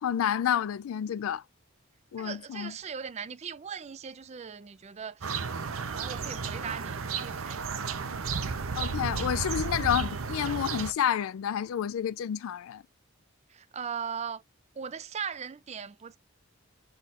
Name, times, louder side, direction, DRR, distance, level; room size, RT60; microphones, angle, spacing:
voice 1, 0.0-1.4 2.1-2.7 8.8-12.8, left 9 dB, 80° left, 0.3 m, -29 dB
voice 2, 2.2-5.4 5.7-8.0 13.5-14.4 14.8-16.2, right 7 dB, 30° right, 0.4 m, -39 dB
sound 1, 5.2-10.9, right 5 dB, 75° right, 0.7 m, -33 dB
3.7 x 2.5 x 4.1 m
head